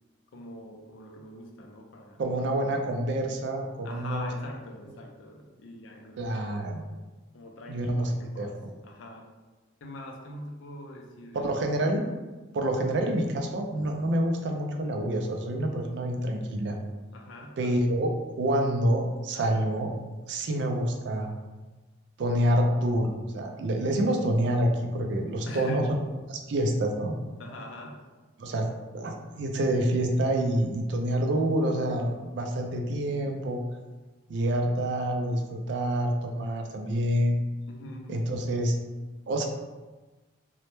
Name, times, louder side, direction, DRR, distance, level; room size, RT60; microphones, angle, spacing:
voice 1, 0.3-2.8 3.8-6.9 7.3-8.6 8.8-9.3 9.8-11.8 12.7-13.1 17.1-17.6 25.4-25.9 27.4-28.2 37.7-38.3, left 1 dB, 80° left, 1 dB, 0.4 m, -43 dB
voice 2, 2.2-4.3 6.2-6.8 7.7-8.1 8.4-8.7 11.3-12.0 12.5-16.8 17.6-18.1 18.4-19.9 20.3-21.3 22.2-25.9 26.3-27.2 28.4-28.7 28.9-33.6 34.3-37.4 38.1-38.8 39.3-39.4, right 1 dB, 65° right, 3 dB, 0.3 m, -27 dB
2.1 x 2.0 x 2.9 m, 1.2 s
head